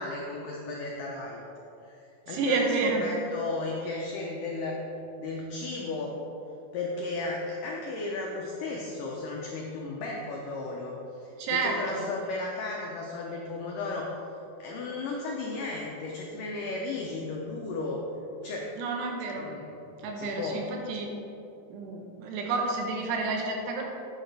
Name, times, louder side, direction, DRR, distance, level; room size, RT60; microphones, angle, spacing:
voice 1, 0.0-1.4 1.8-4.8 5.2-6.2 6.7-14.1 14.6-18.0 18.4-18.7 19.4-20.6, left 3 dB, 90° left, -1 dB, 1.8 m, -35 dB
voice 2, 2.3-3.0 11.4-12.1 18.8-19.5 20.0-21.1 21.7-23.8, right 4 dB, 85° right, 1 dB, 3.2 m, -30 dB
9.0 x 8.7 x 3.3 m, 2.9 s
omnidirectional pair, 4.8 m